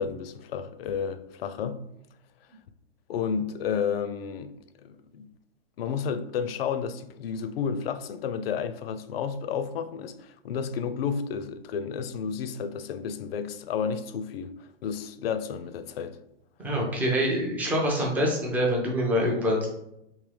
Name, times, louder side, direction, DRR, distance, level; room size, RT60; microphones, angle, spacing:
voice 1, 0.0-1.8 3.1-4.5 4.8-5.3 5.8-16.2, left 6 dB, 65° left, 0.5 m, -31 dB
voice 2, 16.6-19.7, equal, 5° right, 0.3 m, -25 dB
3.6 x 2.8 x 3.2 m
hypercardioid pair, 140°, 31 cm